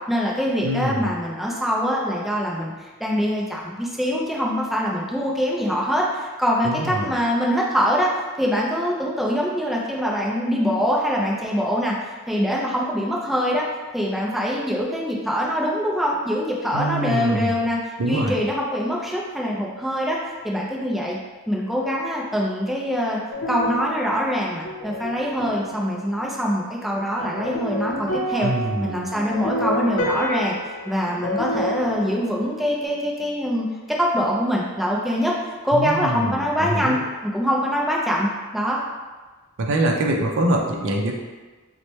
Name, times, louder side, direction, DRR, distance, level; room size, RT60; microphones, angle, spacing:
voice 1, 0.1-8.1 8.4-13.7 13.9-21.2 21.5-23.2 23.5-28.5 28.8-30.6 30.9-35.3 35.6-37.0 37.2-38.8, equal, ahead, -4 dB, 0.4 m, -24 dB
voice 2, 0.6-1.1 6.6-7.1 16.7-17.6 18.0-18.4 28.4-29.0 35.7-37.0 39.6-41.1, right 1 dB, 60° right, 1 dB, 0.5 m, -24 dB
sound 1, 23.3-26.4 27.2-32.8, equal, 80° left, 0.6 m, -30 dB
3.1 x 2.1 x 4.1 m, 1.3 s
head